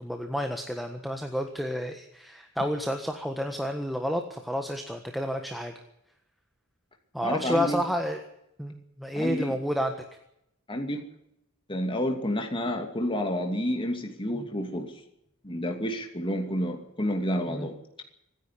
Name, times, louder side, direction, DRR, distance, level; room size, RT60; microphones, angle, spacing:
voice 1, 0.0-5.7 7.1-8.2 8.6-9.9 14.3-14.5 17.5-17.7, equal, ahead, 4 dB, 1.5 m, -30 dB
voice 2, 7.2-7.8 9.1-9.6 10.7-11.0 11.7-14.9 15.4-17.7, equal, 25° left, 3 dB, 2.6 m, -29 dB
25.5 x 10.5 x 10.0 m, 0.79 s
head